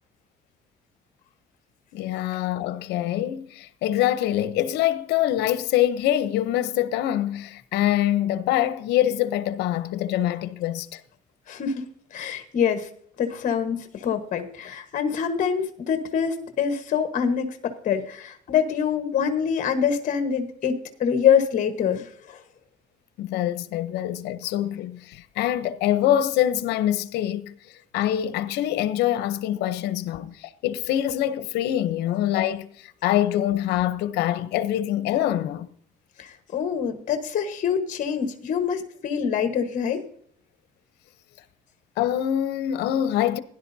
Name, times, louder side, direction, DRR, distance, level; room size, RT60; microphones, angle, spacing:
voice 1, 1.9-11.0 23.2-27.5 27.9-35.7 42.0-43.4, left 12 dB, 85° left, 0.8 m, -24 dB
voice 2, 11.5-11.8 12.1-12.9 13.2-22.4 36.2-40.0, left 7 dB, 50° left, 1.3 m, -25 dB
16.5 x 11.0 x 2.7 m
cardioid pair, 110°, 17 cm